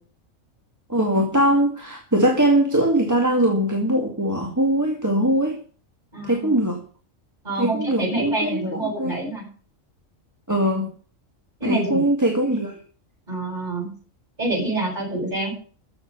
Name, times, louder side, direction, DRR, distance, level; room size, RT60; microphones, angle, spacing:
voice 1, 0.9-5.6 6.2-6.8 7.6-9.2 10.5-10.9 11.6-12.8, right 1 dB, 15° right, 1 dB, 2.2 m, -21 dB
voice 2, 6.1-6.6 7.4-9.4 11.6-12.0 13.3-13.9 14.4-15.5, right 2 dB, 35° right, -1 dB, 8.3 m, -27 dB
14.5 x 7.6 x 6.9 m, 0.42 s
omnidirectional pair, 1.4 m